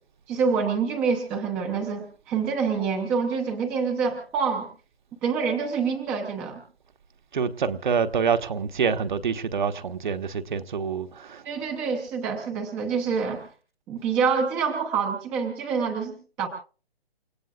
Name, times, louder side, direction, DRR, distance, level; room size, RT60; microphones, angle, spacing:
voice 1, 0.3-4.7 5.2-6.6 11.4-13.5 13.9-16.5, right 5 dB, 5° right, 0.7 m, -26 dB
voice 2, 7.3-11.4, right 6 dB, 50° right, 1.3 m, -26 dB
29.0 x 16.5 x 2.4 m
hypercardioid pair, 160°, 30 cm